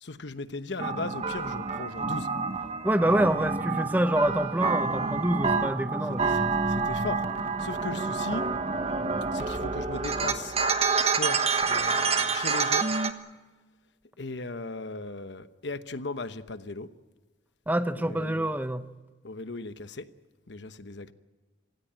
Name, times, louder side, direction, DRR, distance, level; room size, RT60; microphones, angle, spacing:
voice 1, 0.0-2.3 3.1-3.3 6.7-7.2 7.6-8.4 9.3-10.5 11.1-11.4 11.6-12.8 14.2-16.9 18.1-18.5 19.2-20.0 20.5-21.1, left 3 dB, 65° left, 1.0 m, -37 dB
sound 1, 0.8-13.1, right 4 dB, 35° right, 1.2 m, -28 dB
voice 2, 2.8-6.3 17.7-18.9, right 1 dB, 10° right, 0.7 m, -26 dB
26.0 x 16.0 x 8.8 m
head